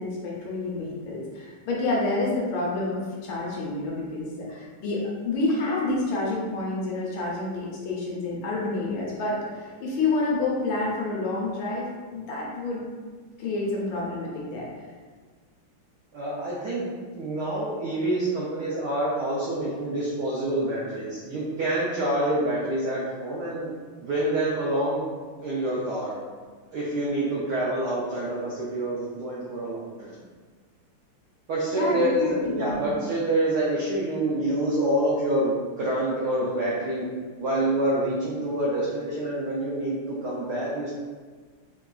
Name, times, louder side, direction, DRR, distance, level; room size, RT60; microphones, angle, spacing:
voice 1, 0.0-12.8 13.4-14.7 31.7-33.0, left 2 dB, 75° left, -4 dB, 1.3 m, -28 dB
voice 2, 16.1-23.7 24.0-25.0 25.4-26.2 26.7-30.1 31.5-37.1 37.4-40.9, right 1 dB, 90° right, -6 dB, 0.9 m, -27 dB
3.8 x 2.3 x 2.2 m, 1.5 s
omnidirectional pair, 2.4 m